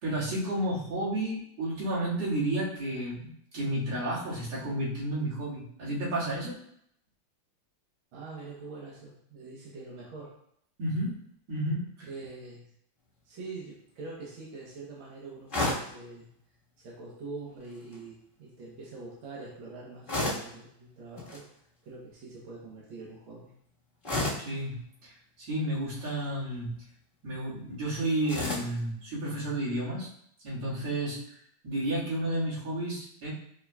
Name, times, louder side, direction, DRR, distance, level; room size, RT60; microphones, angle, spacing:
voice 1, 0.0-6.6 10.8-11.1 11.5-12.1 24.4-25.1 25.4-26.7 27.2-30.1 30.4-31.2 31.6-33.3, right 1 dB, 45° right, -10 dB, 2.4 m, -31 dB
voice 2, 8.1-10.3 12.1-12.6 13.2-16.3 16.8-21.5 21.8-23.5, right 3 dB, 65° right, -5 dB, 1.3 m, -44 dB
sound 1, 15.5-16.0 17.6-18.0 20.1-20.6 21.2-21.4 24.0-24.5 25.8-26.2 28.2-28.8, left 2 dB, 40° left, 0.7 m, -31 dB
4.7 x 4.5 x 2.3 m, 0.70 s
omnidirectional pair, 3.5 m